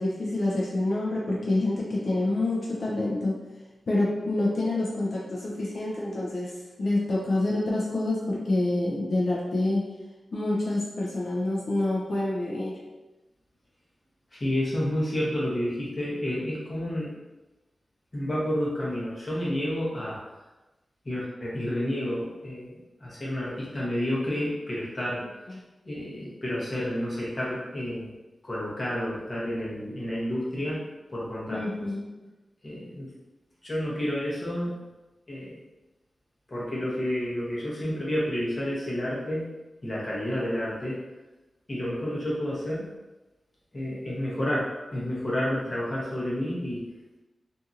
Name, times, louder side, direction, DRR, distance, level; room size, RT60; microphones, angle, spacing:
voice 1, 0.0-3.3 3.9-6.5 6.8-9.8 10.3-12.8 31.5-32.1, left 2 dB, 55° left, -5 dB, 0.5 m, -27 dB
voice 2, 14.3-17.1 18.1-20.2 21.0-25.2 25.8-28.1 28.4-30.8 31.1-31.9 32.6-33.1 33.6-34.8 35.3-35.6 36.5-39.5 39.8-41.0 41.7-42.9 43.7-46.9, left 1 dB, 30° left, -7 dB, 0.9 m, -30 dB
2.8 x 2.6 x 2.4 m, 1.1 s
wide cardioid pair, 130°, 0 cm